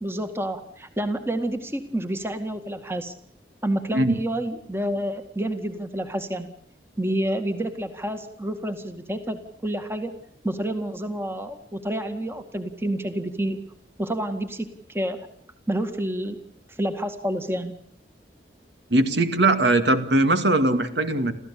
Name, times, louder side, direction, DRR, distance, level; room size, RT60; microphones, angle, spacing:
voice 1, 0.0-3.1 3.6-6.5 7.0-10.1 10.4-13.6 14.0-15.2 15.7-16.4 16.8-17.7, right 1 dB, 15° right, 7 dB, 2.0 m, -29 dB
voice 2, 18.9-21.3, right 2 dB, 75° right, 9 dB, 2.2 m, -20 dB
29.0 x 15.0 x 8.5 m, 0.67 s
head